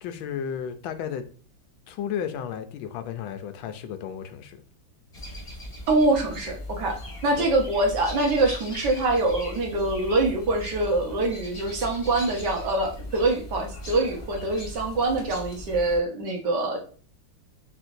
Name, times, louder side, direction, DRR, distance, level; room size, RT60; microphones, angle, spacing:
voice 1, 0.0-1.3 1.9-4.6 7.4-7.5, left 8 dB, 90° left, 1.4 m, -33 dB
sound 1, 5.1-16.0, equal, 20° left, 0.9 m, -39 dB
voice 2, 5.9-7.0 7.2-16.8, right 2 dB, 65° right, 1.5 m, -24 dB
4.5 x 4.0 x 2.6 m
omnidirectional pair, 2.1 m